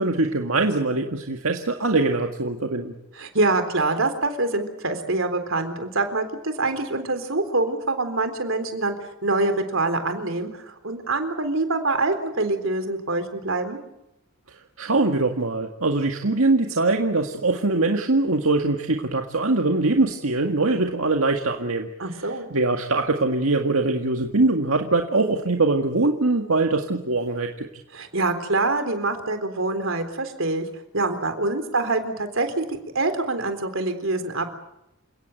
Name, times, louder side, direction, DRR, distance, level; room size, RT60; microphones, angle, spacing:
voice 1, 0.0-2.9 14.8-27.7, right 2 dB, 85° right, 3 dB, 1.9 m, -22 dB
voice 2, 3.2-8.9 9.2-13.8 22.0-22.5 27.9-30.7 30.9-34.5, right 2 dB, 70° right, 8 dB, 3.8 m, -25 dB
29.0 x 17.5 x 9.2 m, 0.87 s
head